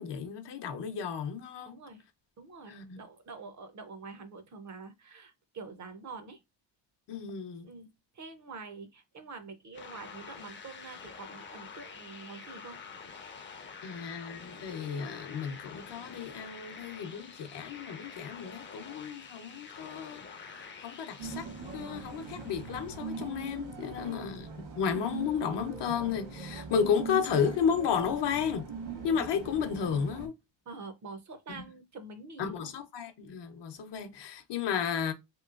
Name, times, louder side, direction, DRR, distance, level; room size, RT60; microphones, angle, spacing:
voice 1, 0.0-1.8 2.7-3.0 7.1-7.7 13.8-20.2 20.8-21.5 21.7-24.5 24.8-28.7 29.0-30.3 31.5-31.6 32.4-35.1, left 7 dB, 70° left, 0.7 m, -33 dB
voice 2, 1.6-2.0 2.4-6.4 7.6-12.8 24.0-24.3 30.7-32.7, right 4 dB, 40° right, 0.5 m, -46 dB
sound 1, 9.7-23.4, left 5 dB, 30° left, 0.4 m, -48 dB
sound 2, 21.2-30.3, right 4 dB, 70° right, 1.2 m, -41 dB
3.0 x 3.0 x 2.4 m
wide cardioid pair, 140°, 44 cm